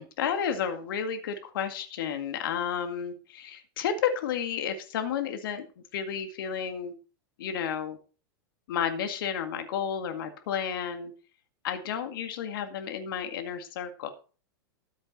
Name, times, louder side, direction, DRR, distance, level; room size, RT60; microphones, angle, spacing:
voice 1, 0.0-5.7 5.9-6.9 7.4-8.0 8.7-11.1 11.6-14.1, left 8 dB, 70° left, 7 dB, 2.0 m, -32 dB
13.5 x 7.3 x 4.2 m, 0.35 s
hypercardioid pair, 105°, 12 cm